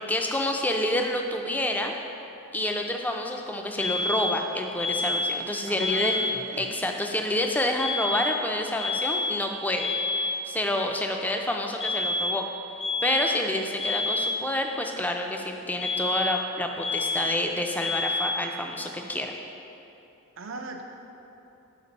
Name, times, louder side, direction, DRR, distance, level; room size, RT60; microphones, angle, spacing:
voice 1, 0.0-2.0 2.5-6.1 6.6-12.5 13.0-19.3, left 1 dB, 10° left, 3 dB, 0.3 m, -28 dB
sound 1, 3.8-4.4 4.8-5.5 5.8-6.4 7.8-8.5 8.8-9.5 9.8-10.5 11.8-12.5 12.8-13.5 13.8-14.5 15.8-16.5 16.8-17.5 17.8-18.5, left 2 dB, 55° left, 0.9 m, -28 dB
voice 2, 5.7-6.8 20.4-20.8, right 3 dB, 65° right, 3 dB, 0.4 m, -39 dB
6.6 x 4.9 x 4.0 m, 2.9 s
head